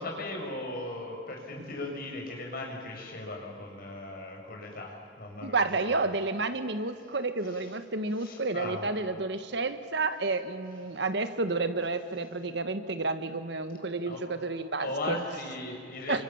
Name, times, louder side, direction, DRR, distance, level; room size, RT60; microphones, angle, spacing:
voice 1, 0.0-6.0 7.4-7.7 8.2-8.8 14.1-14.2 14.8-16.2, left 2 dB, 55° left, 1 dB, 6.2 m, -38 dB
voice 2, 5.4-15.2 16.1-16.2, right 3 dB, 65° right, 10 dB, 1.5 m, -30 dB
29.5 x 25.5 x 7.3 m, 2.4 s
head